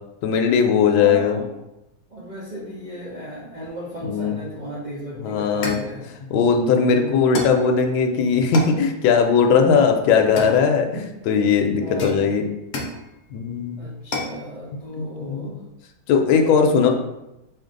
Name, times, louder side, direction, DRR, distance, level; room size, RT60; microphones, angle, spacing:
voice 1, 0.2-1.4 4.0-4.3 5.2-5.8 6.3-12.4 13.3-13.8 15.0-15.5 16.1-16.9, left 6 dB, 85° left, 3 dB, 1.3 m, -19 dB
voice 2, 0.9-1.6 2.1-6.1 6.8-7.3 9.7-9.9 11.8-12.3 13.8-15.6 16.3-16.9, right 1 dB, 65° right, -6 dB, 0.4 m, -35 dB
sound 1, 4.9-5.1 5.6-6.0 7.3-7.7 8.5-8.8 10.4-11.0 12.0-13.0 14.1-14.4, left 3 dB, 60° left, 1.0 m, -30 dB
4.7 x 2.5 x 3.8 m, 0.91 s
omnidirectional pair, 2.1 m